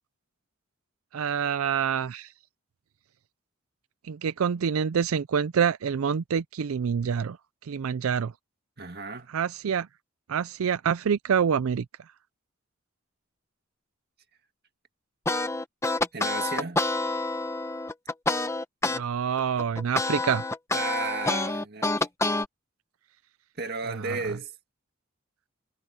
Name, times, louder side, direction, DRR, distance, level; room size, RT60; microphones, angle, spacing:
voice 1, 1.1-2.3 4.0-7.4 7.6-8.3 9.3-9.9 10.3-11.9 18.9-20.4 24.0-24.2, right 7 dB, 90° right, 0.4 m, -26 dB
voice 2, 8.8-9.3 16.1-16.8 20.7-22.4 23.6-24.5, right 4 dB, 50° right, 2.0 m, -34 dB
sound 1, 15.3-19.0 19.4-22.5, left 2 dB, 15° left, 0.9 m, -27 dB
head